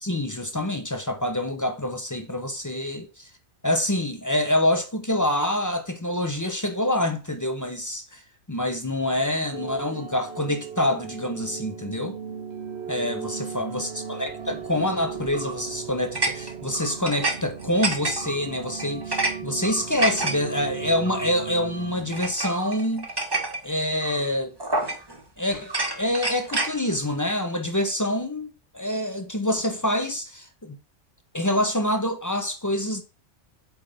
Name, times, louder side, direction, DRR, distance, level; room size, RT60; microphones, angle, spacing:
voice 1, 0.0-3.3 3.6-8.2 8.5-12.2 12.9-23.1 23.6-24.5 25.4-28.5 28.7-30.8 31.3-33.0, left 1 dB, 20° left, 0.5 m, -26 dB
sound 1, 9.5-22.3, right 7 dB, 60° right, 1.0 m, -37 dB
sound 2, 15.3-15.6 16.1-17.4 17.6-18.4 18.8-19.3 19.6-20.3 21.0-21.3 22.1-23.6 24.0-24.2 24.6-25.2 25.6-26.7, right 2 dB, 20° right, 1.0 m, -28 dB
7.9 x 3.9 x 3.4 m
omnidirectional pair, 1.3 m